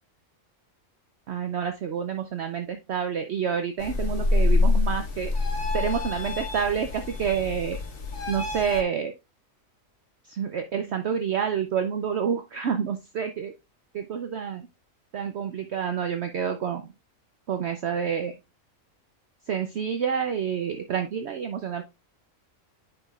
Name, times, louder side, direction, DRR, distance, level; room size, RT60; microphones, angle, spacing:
voice 1, 1.3-5.3 5.7-7.8 8.3-9.1 10.3-13.5 13.9-14.7 15.1-16.9 17.5-18.3 19.5-21.8, right 7 dB, 60° right, 7 dB, 0.8 m, -28 dB
sound 1, 3.8-8.8, left 3 dB, 70° left, 1.8 m, -26 dB
9.8 x 5.0 x 2.3 m, 0.24 s
omnidirectional pair, 1.5 m